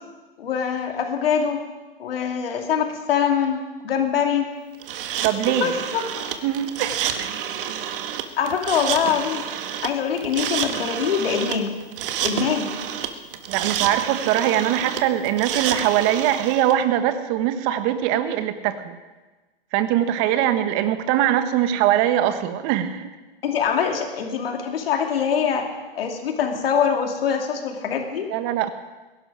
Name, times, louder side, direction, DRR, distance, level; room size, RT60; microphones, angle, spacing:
voice 1, 0.4-1.6 2.0-4.5 5.6-6.3 8.4-9.5 9.8-11.7 12.2-12.7 23.4-25.7 25.9-28.3, left 7 dB, 75° left, 3 dB, 2.7 m, -24 dB
sound 1, 4.8-16.7, right 9 dB, 65° right, 1.6 m, -29 dB
voice 2, 5.2-5.7 6.4-7.3 13.5-19.0 19.7-23.2 28.3-28.7, right 11 dB, 45° right, 10 dB, 1.4 m, -22 dB
21.5 x 11.5 x 5.0 m, 1.2 s
hypercardioid pair, 115°, 29 cm